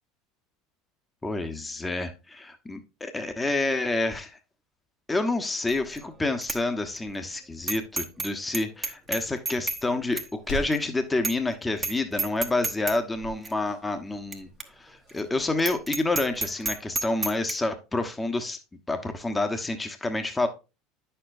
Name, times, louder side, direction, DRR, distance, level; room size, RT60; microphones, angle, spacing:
voice 1, 1.2-4.4 5.1-14.5 14.8-18.6 18.9-20.5, left 2 dB, 15° left, 7 dB, 1.1 m, -28 dB
Bicycle bell, 5.7-6.0 6.4-6.6 7.0-7.1 7.7-8.3 8.5-9.8 10.2-10.3 10.7-10.8 11.2-11.5 11.8-11.9 12.2-13.0 13.4-13.5 14.3-14.4 14.6-14.7 15.1-15.2 15.6-17.5, right 3 dB, 20° right, 1.0 m, -30 dB
sound 1, 9.0-16.5, equal, 70° left, 3.2 m, -45 dB
9.6 x 6.8 x 2.6 m, 0.29 s
hypercardioid pair, 75°, 0 cm